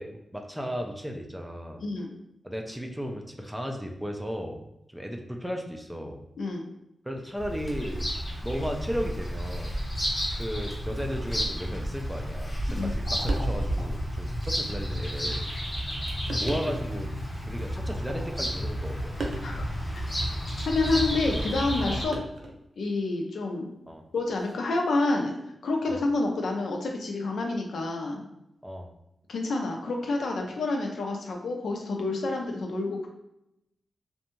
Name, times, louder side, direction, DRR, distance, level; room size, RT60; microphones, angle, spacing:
voice 1, 0.0-1.8 2.4-4.6 4.9-6.2 7.1-8.1 8.4-9.7 10.3-15.4 16.3-17.1 17.4-19.2 22.0-22.2 23.9-24.0 25.9-26.0 28.6-28.9, equal, 5° right, 2 dB, 0.3 m, -35 dB
Bird vocalization bird call bird song, 7.4-22.1, equal, 25° left, 0.8 m, -31 dB
sound 1, 13.3-13.8 14.3-14.4 15.4-15.5 16.3-17.0 17.8-18.5 19.2-19.6 21.1-21.3 22.1-22.7 24.3-24.6, right 2 dB, 65° right, 0.5 m, -38 dB
voice 2, 20.7-22.2 22.8-23.7 24.1-25.3 25.6-28.2 29.3-33.1, left 2 dB, 80° left, 1 dB, 0.5 m, -28 dB
2.6 x 2.2 x 2.9 m, 0.83 s
wide cardioid pair, 105°, 0 cm